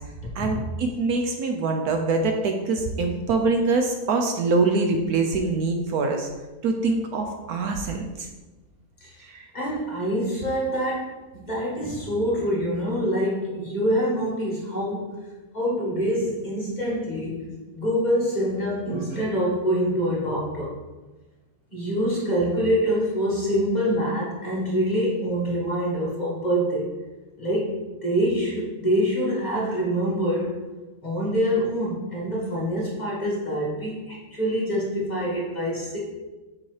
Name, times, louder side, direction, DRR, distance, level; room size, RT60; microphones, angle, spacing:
voice 1, 0.4-6.3 6.6-8.3 9.2-9.5, right 3 dB, 70° right, 4 dB, 1.0 m, -24 dB
voice 2, 9.5-15.2 15.5-17.5 17.7-20.8 21.7-26.9 27.4-30.5 31.0-36.0, equal, 25° left, -5 dB, 1.4 m, -25 dB
6.9 x 5.5 x 3.2 m, 1.2 s
omnidirectional pair, 1.8 m